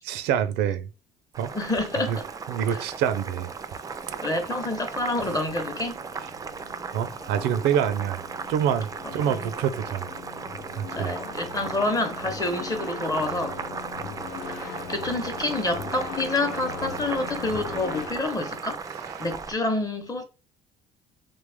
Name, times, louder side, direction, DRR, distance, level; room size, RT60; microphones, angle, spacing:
voice 1, 0.1-0.9 1.4-1.5 2.1-2.2 2.5-3.5 4.1-4.2 6.9-8.2 8.5-10.1 10.8-11.1 14.4-14.6 19.1-19.3, right 9 dB, 85° right, 0.5 m, -26 dB
Boiling, 1.3-19.5, right 5 dB, 20° right, 0.3 m, -36 dB
voice 2, 1.5-2.3 2.7-2.8 4.2-6.0 9.2-9.5 10.9-13.6 14.5-18.8 19.2-20.2, left 2 dB, 20° left, 0.8 m, -28 dB
sound 1, 3.5-18.1, left 7 dB, 85° left, 0.6 m, -41 dB
3.3 x 2.3 x 3.4 m
cardioid pair, 110°, 17 cm